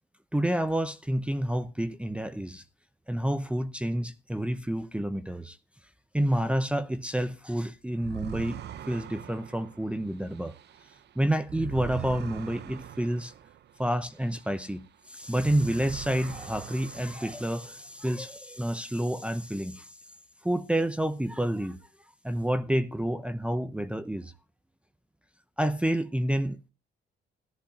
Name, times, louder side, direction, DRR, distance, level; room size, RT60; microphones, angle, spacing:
voice 1, 0.3-2.6 3.1-5.6 6.1-8.6 8.9-10.5 11.2-13.3 13.8-19.9 20.4-21.8 22.2-24.3 25.6-26.6, right 1 dB, 5° right, 0.7 m, -29 dB
sound 1, 8.0-14.9 15.2-17.9, right 10 dB, 60° right, 0.7 m, -42 dB
14.5 x 11.5 x 2.7 m
cardioid pair, 90°, 20 cm